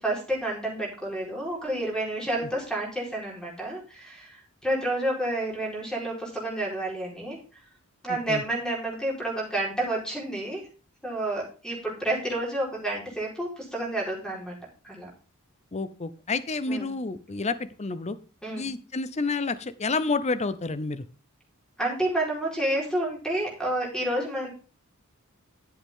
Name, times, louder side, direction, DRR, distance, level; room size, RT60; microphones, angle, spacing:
voice 1, 0.0-7.4 8.0-10.6 11.0-14.6 14.8-15.1 16.7-16.9 18.4-18.7 21.8-24.5, right 1 dB, 5° left, -2 dB, 4.4 m, -30 dB
voice 2, 15.7-18.2 18.6-21.0, left 3 dB, 30° left, 14 dB, 0.7 m, -29 dB
11.5 x 7.9 x 3.7 m, 0.36 s
head